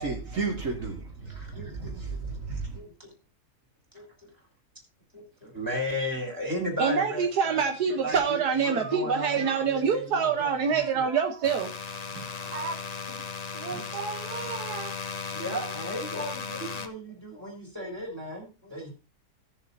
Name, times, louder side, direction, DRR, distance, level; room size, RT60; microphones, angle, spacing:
voice 1, 0.0-2.8, right 4 dB, 55° right, -1 dB, 2.3 m, -33 dB
voice 2, 1.2-1.9 2.7-3.1 3.9-4.3 5.1-7.6 7.9-11.1 12.3-12.8 15.3-18.9, equal, 10° right, 0 dB, 3.8 m, -36 dB
voice 3, 6.8-11.7 12.1-12.8 13.1-13.2 13.5-15.0 15.6-15.7, right 6 dB, 75° right, 5 dB, 1.6 m, -27 dB
sound 1, 11.4-16.9, left 5 dB, 45° left, 0.5 m, -36 dB
17.0 x 7.1 x 2.7 m, 0.31 s
omnidirectional pair, 1.7 m